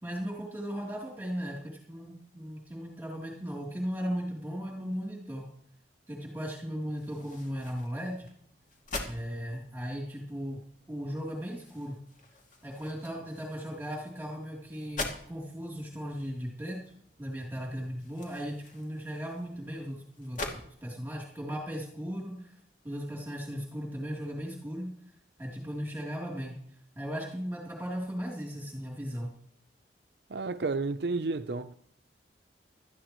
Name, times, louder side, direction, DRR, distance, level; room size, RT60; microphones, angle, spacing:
voice 1, 0.0-5.5 6.1-8.3 9.0-10.6 10.9-12.0 12.6-16.8 17.2-22.5 22.8-24.9 25.4-26.5 26.9-29.3, equal, 10° right, 3.2 m, -37 dB
sound 1, 7.0-20.6, left 2 dB, 45° left, 2.4 m, -45 dB
voice 2, 30.3-31.7, right 3 dB, 65° right, 0.6 m, -31 dB
18.0 x 13.0 x 3.1 m
head